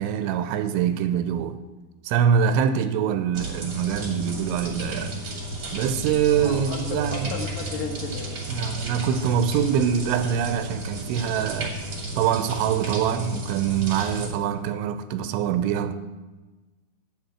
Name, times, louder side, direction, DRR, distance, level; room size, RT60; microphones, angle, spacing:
voice 1, 0.0-1.6 2.0-5.2 5.7-7.4 8.5-11.8 12.2-15.9, right 8 dB, 85° right, 3.0 m, -24 dB
sound 1, 3.3-14.3, right 1 dB, 40° right, 1.6 m, -33 dB
voice 2, 6.3-8.5, left 5 dB, 70° left, 3.2 m, -34 dB
9.1 x 8.1 x 8.9 m
omnidirectional pair, 5.4 m